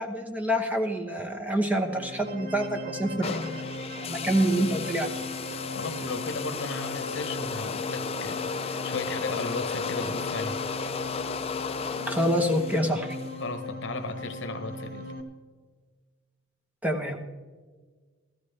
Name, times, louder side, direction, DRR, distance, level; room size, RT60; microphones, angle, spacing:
voice 1, 0.0-3.5 4.0-5.2 12.1-13.2 16.8-17.2, equal, 10° right, 3 dB, 1.0 m, -27 dB
sound 1, 1.6-15.2, left 1 dB, 50° right, 1.3 m, -38 dB
sound 2, 3.2-13.4, left 5 dB, 30° left, 0.4 m, -34 dB
voice 2, 5.7-10.6 13.4-15.1, left 3 dB, 65° left, 8 dB, 0.9 m, -35 dB
15.5 x 14.0 x 3.3 m, 1.4 s
head